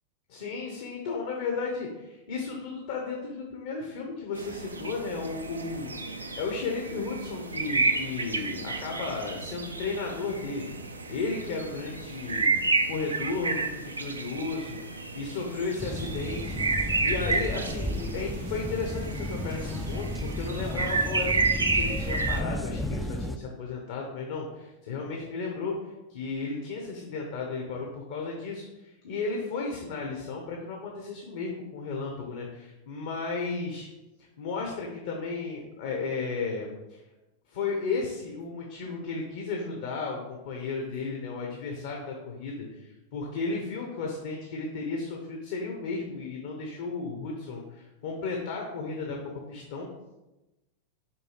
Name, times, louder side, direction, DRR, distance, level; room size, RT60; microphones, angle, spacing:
voice 1, 0.3-10.7 11.1-12.6 12.9-33.9 34.2-37.0 37.5-49.9, left 4 dB, 55° left, 0 dB, 1.1 m, -34 dB
sound 1, 4.3-22.4, right 3 dB, 80° right, 0.5 m, -31 dB
sound 2, 15.8-23.4, left 1 dB, ahead, 0.4 m, -33 dB
7.4 x 4.8 x 3.3 m, 1.0 s
figure-of-eight pair, 90°, 0 cm